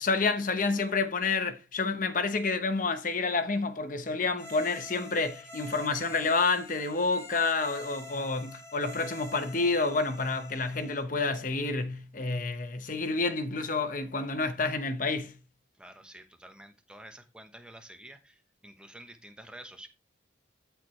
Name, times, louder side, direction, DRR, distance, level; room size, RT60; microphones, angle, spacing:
voice 1, 0.0-15.3, left 3 dB, 40° left, 0.9 m, -29 dB
sound 1, 4.3-11.0, left 1 dB, 15° left, 2.7 m, -47 dB
voice 2, 15.8-19.9, right 1 dB, 5° right, 0.9 m, -49 dB
13.0 x 4.5 x 3.2 m
head